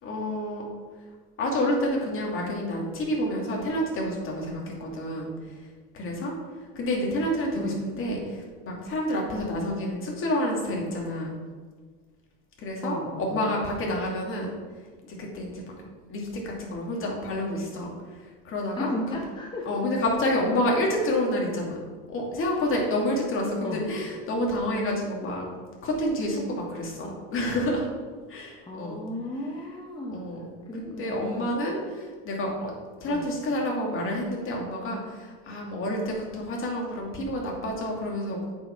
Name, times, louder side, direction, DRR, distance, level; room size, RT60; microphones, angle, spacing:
voice 1, 0.0-0.6 1.4-5.3 5.9-6.3 6.7-11.3 12.6-14.5 15.1-15.8 16.1-17.9 18.4-18.9 19.7-21.8 22.1-25.5 25.8-27.9 28.3-29.0 30.1-30.4 30.8-32.7 33.0-38.4, left 1 dB, 40° left, -1 dB, 2.6 m, -29 dB
voice 2, 12.8-13.5 18.8-19.8 23.6-23.8 27.0-27.3 28.7-30.3 30.7-31.6 33.1-33.3, left 1 dB, 15° left, -1 dB, 0.9 m, -35 dB
8.3 x 5.5 x 6.0 m, 1.5 s
supercardioid pair, 135°, 33 cm